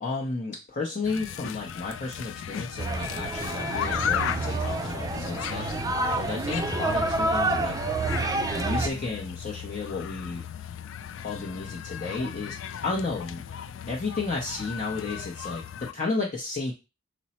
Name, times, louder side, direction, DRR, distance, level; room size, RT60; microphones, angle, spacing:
voice 1, 0.0-5.7 6.2-7.9 8.5-10.5 11.2-13.4 13.9-16.7, left 3 dB, 40° left, -2 dB, 0.7 m, -32 dB
sound 1, 1.0-15.9, left 9 dB, 70° left, 0.3 m, -36 dB
sound 2, 2.8-8.9, right 3 dB, 20° right, 0.3 m, -28 dB
5.1 x 2.0 x 4.1 m, 0.27 s
head